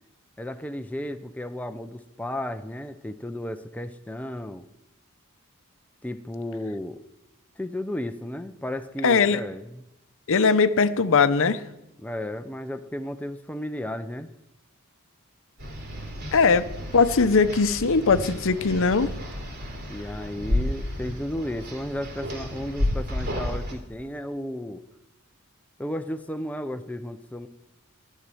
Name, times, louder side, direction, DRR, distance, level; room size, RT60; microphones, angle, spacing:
voice 1, 0.4-4.6 6.0-7.0 7.6-9.8 12.0-14.3 19.9-24.8 25.8-27.5, left 1 dB, 5° left, 0.6 m, -34 dB
voice 2, 9.0-9.4 10.3-11.6 16.3-19.1, left 4 dB, 65° left, 0.7 m, -20 dB
sound 1, 15.6-23.7, left 1 dB, 50° right, 3.5 m, -32 dB
12.5 x 7.4 x 10.0 m
head